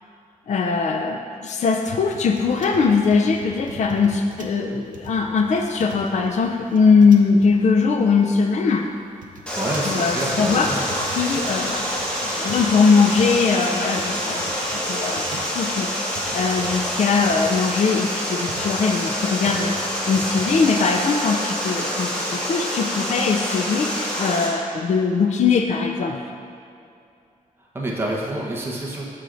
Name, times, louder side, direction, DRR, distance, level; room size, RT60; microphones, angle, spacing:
voice 1, 0.5-8.8 9.9-10.7 11.2-11.9 12.2-26.2, left 5 dB, 55° left, 3 dB, 0.4 m, -21 dB
sound 1, 1.9-21.0, right 4 dB, 65° right, 0.6 m, -42 dB
Water, 9.5-24.5, equal, 10° left, 1.3 m, -27 dB
voice 2, 9.5-10.9 27.7-29.0, right 1 dB, 15° right, -4 dB, 0.9 m, -27 dB
13.0 x 4.5 x 2.5 m, 2.5 s
wide cardioid pair, 135°, 14 cm